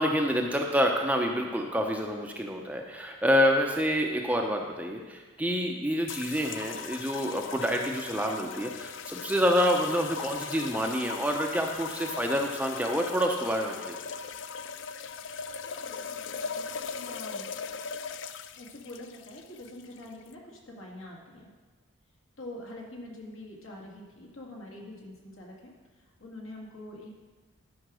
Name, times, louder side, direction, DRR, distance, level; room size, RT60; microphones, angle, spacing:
voice 1, 0.0-14.0, equal, 5° right, 1 dB, 0.6 m, -27 dB
sound 1, 6.1-20.3, left 6 dB, 60° left, 0.4 m, -39 dB
voice 2, 15.5-17.5 18.6-21.5 22.4-25.7 26.0-27.1, left 1 dB, 75° left, -2 dB, 2.2 m, -45 dB
11.5 x 5.1 x 6.2 m, 1.3 s
head